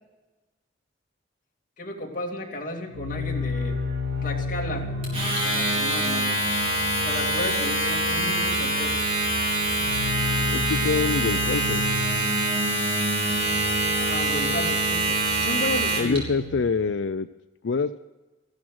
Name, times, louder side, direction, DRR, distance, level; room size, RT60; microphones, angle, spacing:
voice 1, 1.8-3.8 4.1-4.9 5.4-6.4 7.0-9.0 14.0-16.2, left 1 dB, 45° left, 0 dB, 2.4 m, -33 dB
sound 1, 2.9-16.6, left 3 dB, 70° right, 2.1 m, -32 dB
Domestic sounds home sounds, 5.0-16.2, right 2 dB, 35° right, 4.4 m, -25 dB
voice 2, 10.5-11.8 16.0-17.3 17.6-18.0, left 4 dB, 90° left, 11 dB, 0.5 m, -25 dB
14.5 x 12.5 x 6.3 m, 1.1 s
head